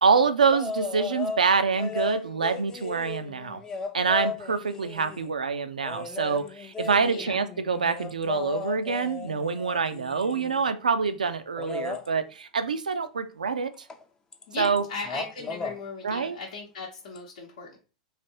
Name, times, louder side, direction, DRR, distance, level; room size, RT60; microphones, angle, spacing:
voice 1, 0.0-3.6 3.9-13.7 14.6-14.8 16.0-16.4, right 5 dB, 85° right, 10 dB, 0.3 m, -26 dB
sound 1, 0.5-1.4 1.8-5.3 5.8-10.7 11.6-12.1 13.9-14.0 14.3-14.8 15.0-15.8 17.2-17.3, left 4 dB, 15° left, 0.4 m, -35 dB
voice 2, 14.5-17.8, left 4 dB, 65° left, -2 dB, 0.8 m, -38 dB
3.2 x 2.5 x 2.8 m, 0.34 s
hypercardioid pair, 100°, 4 cm